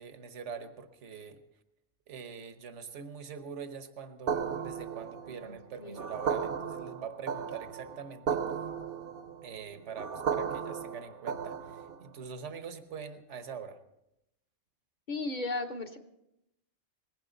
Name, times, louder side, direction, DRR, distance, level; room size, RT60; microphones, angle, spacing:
voice 1, 0.0-1.4 2.1-8.4 9.4-13.8, right 6 dB, 75° right, 9 dB, 1.4 m, -44 dB
sound 1, 4.3-12.1, right 6 dB, 55° right, 0.9 m, -35 dB
voice 2, 5.3-6.0 15.1-16.0, left 2 dB, 40° left, 5 dB, 1.2 m, -36 dB
19.5 x 16.5 x 3.9 m, 0.86 s
omnidirectional pair, 1.2 m